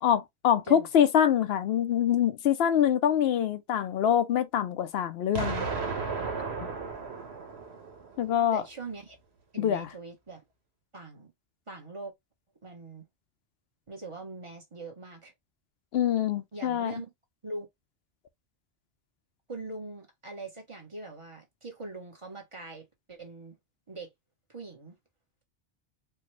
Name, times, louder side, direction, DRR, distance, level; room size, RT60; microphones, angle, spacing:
voice 1, 0.0-5.6 8.2-8.6 9.6-9.9 15.9-16.9, left 9 dB, 75° left, 0.8 m, -25 dB
Explosion, 5.4-8.3, right 4 dB, 85° right, 1.2 m, -34 dB
voice 2, 8.5-9.2 9.5-10.4 10.9-11.3 11.7-12.1 12.6-13.1 13.9-15.3 16.5-17.1 17.4-17.7 19.5-23.6 23.9-24.1 24.5-25.0, right 3 dB, 30° right, 1.0 m, -42 dB
4.6 x 2.1 x 3.1 m
omnidirectional pair, 1.1 m